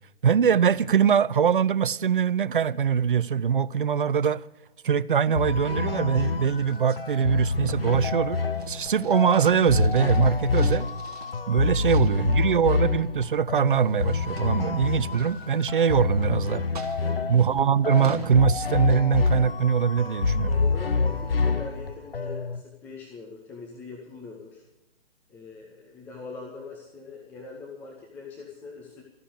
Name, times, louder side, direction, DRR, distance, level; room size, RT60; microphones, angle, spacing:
voice 1, 0.2-4.5 4.8-10.9 11.5-16.6 17.3-20.5, right 7 dB, 55° right, 0.5 m, -23 dB
sound 1, 5.3-22.6, left 4 dB, 65° left, 1.2 m, -27 dB
sound 2, 6.6-11.4 11.8-12.5 13.5-16.2 16.7-18.4, right 6 dB, 35° right, 1.3 m, -46 dB
voice 2, 11.8-12.3 17.0-17.4 20.5-24.6 25.3-29.0, left 4 dB, 5° left, 0.7 m, -42 dB
13.5 x 9.8 x 8.2 m
figure-of-eight pair, 130°, 32 cm